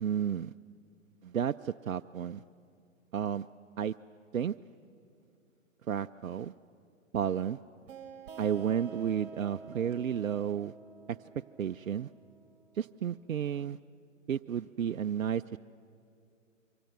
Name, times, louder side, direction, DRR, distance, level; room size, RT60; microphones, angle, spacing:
voice 1, 0.0-0.5 1.2-2.4 3.1-3.5 3.8-3.9 4.3-4.5 5.9-6.5 7.1-7.6 8.4-10.7 11.1-11.2 11.6-12.1 12.8-13.8 14.3-15.6, right 8 dB, 80° right, 11 dB, 0.5 m, -32 dB
sound 1, 7.9-13.2, right 5 dB, 40° right, 2.0 m, -49 dB
27.5 x 24.0 x 6.8 m, 2.4 s
figure-of-eight pair, 120°, 40 cm